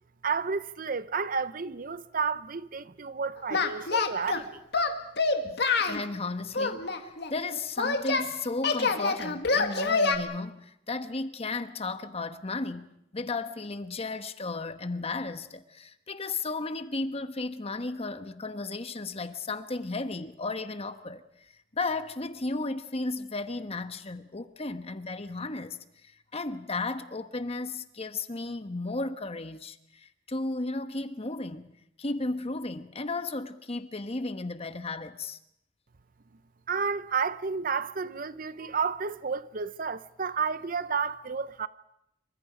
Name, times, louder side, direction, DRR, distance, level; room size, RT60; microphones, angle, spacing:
voice 1, 0.2-4.6 36.7-41.7, right 5 dB, 50° right, 0.7 m, -31 dB
Singing, 3.5-4.4 4.7-6.0 6.5-8.3 8.6-10.2, left 4 dB, 65° left, 2.0 m, -26 dB
voice 2, 5.4-21.2 21.7-31.7 32.0-35.4, left 3 dB, 35° left, 1.2 m, -34 dB
27.5 x 24.0 x 5.1 m
head